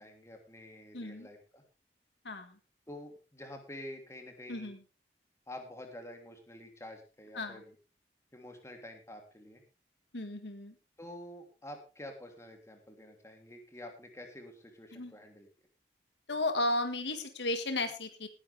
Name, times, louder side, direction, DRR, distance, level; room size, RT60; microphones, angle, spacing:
voice 1, 0.0-1.6 2.9-4.7 5.5-7.7 8.3-9.6 11.0-15.5, left 1 dB, 15° left, 3 dB, 3.0 m, -48 dB
voice 2, 0.9-1.3 2.3-2.5 4.5-4.8 7.4-7.6 10.1-10.7 14.9-15.1 16.3-18.3, left 2 dB, 75° left, 8 dB, 1.7 m, -34 dB
18.5 x 10.5 x 3.4 m, 0.31 s
head